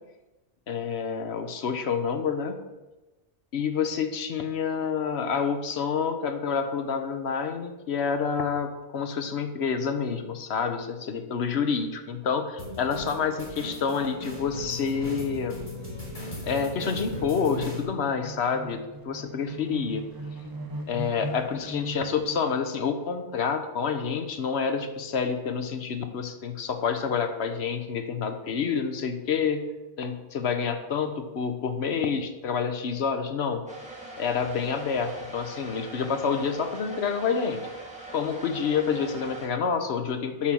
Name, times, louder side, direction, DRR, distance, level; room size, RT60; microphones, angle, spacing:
voice 1, 0.7-2.5 3.5-15.6 16.4-20.0 20.9-29.6 30.0-33.6 34.2-37.6 38.1-40.5, left 6 dB, 65° left, 7 dB, 1.0 m, -28 dB
sound 1, 12.2-12.3 12.7-12.8 13.0-22.7, right 2 dB, 25° right, 0.6 m, -41 dB
sound 2, 12.6-17.8, left 2 dB, 40° left, 2.9 m, -37 dB
sound 3, 33.7-39.5, right 2 dB, 5° right, 1.8 m, -42 dB
7.3 x 5.5 x 6.2 m, 1.1 s
omnidirectional pair, 1.2 m